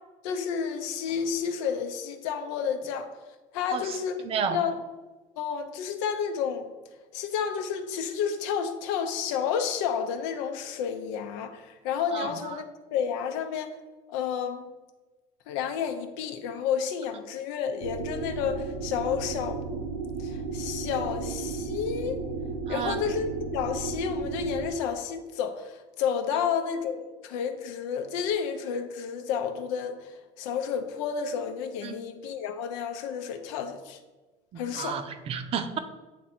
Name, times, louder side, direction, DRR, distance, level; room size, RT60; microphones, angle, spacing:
voice 1, 0.2-3.1 3.5-4.2 4.5-4.7 5.4-6.7 7.1-12.7 12.9-13.8 14.1-14.7 15.5-19.6 20.2-22.2 22.7-34.0 34.6-35.0, left 7 dB, 85° left, 7 dB, 0.7 m, -31 dB
voice 2, 3.7-4.6 12.1-12.6 22.7-23.0 31.8-31.9 34.5-35.8, right 7 dB, 40° right, 8 dB, 0.5 m, -32 dB
sound 1, 17.8-24.7, right 4 dB, 85° right, 0.8 m, -34 dB
8.3 x 2.8 x 4.3 m, 1.2 s
cardioid pair, 135°, 16 cm